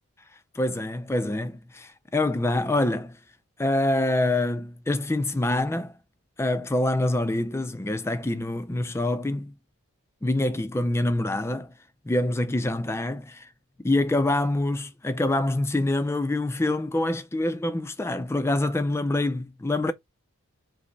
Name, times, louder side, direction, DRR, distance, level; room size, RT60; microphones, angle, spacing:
voice 1, 0.5-3.2 3.6-5.9 6.4-9.5 10.2-11.7 12.1-13.5 13.8-19.9, left 1 dB, 10° left, 0.3 m, -25 dB
5.0 x 2.0 x 3.9 m
head